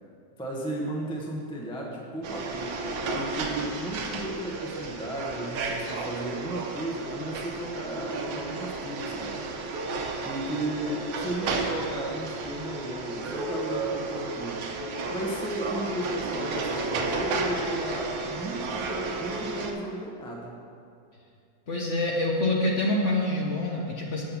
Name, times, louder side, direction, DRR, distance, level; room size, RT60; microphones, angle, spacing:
voice 1, 0.4-2.8 3.1-9.4 10.2-14.6 15.1-20.5, right 1 dB, 5° left, -2 dB, 0.6 m, -35 dB
sound 1, 2.2-19.7, right 3 dB, 85° right, 1.5 m, -32 dB
voice 2, 21.7-24.2, left 1 dB, 50° left, -2 dB, 1.0 m, -26 dB
7.7 x 5.6 x 7.1 m, 2.4 s
omnidirectional pair, 2.0 m